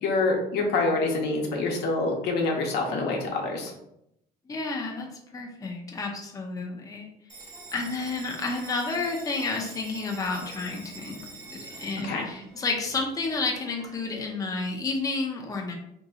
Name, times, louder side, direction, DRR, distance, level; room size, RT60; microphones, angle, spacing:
voice 1, 0.0-3.7 12.0-12.3, left 3 dB, 80° left, 1 dB, 0.8 m, -26 dB
voice 2, 4.5-5.1 5.3-7.1 7.7-15.7, left 3 dB, 20° left, 0 dB, 0.6 m, -31 dB
Bell, 7.3-14.3, right 3 dB, 20° right, 0.9 m, -46 dB
2.8 x 2.2 x 3.8 m, 0.78 s
cardioid pair, 110°, 17 cm